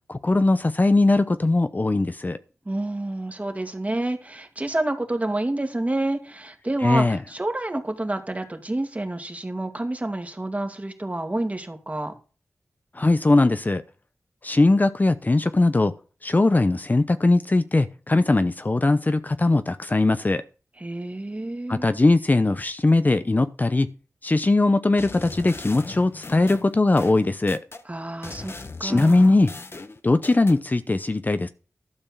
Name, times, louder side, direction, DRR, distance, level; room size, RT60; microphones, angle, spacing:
voice 1, 0.1-2.4 6.8-7.2 13.0-13.8 14.4-15.9 16.2-20.4 21.7-23.9 24.2-27.6 28.8-29.5 30.0-31.5, left 2 dB, 35° left, 0.7 m, -20 dB
voice 2, 2.7-12.1 20.8-21.9 27.8-28.5 28.8-29.4, right 1 dB, 30° right, 2.1 m, -28 dB
sound 1, 25.0-27.8 28.2-30.6, left 3 dB, 50° left, 1.0 m, -39 dB
12.0 x 4.4 x 7.1 m
cardioid pair, 50°, 5 cm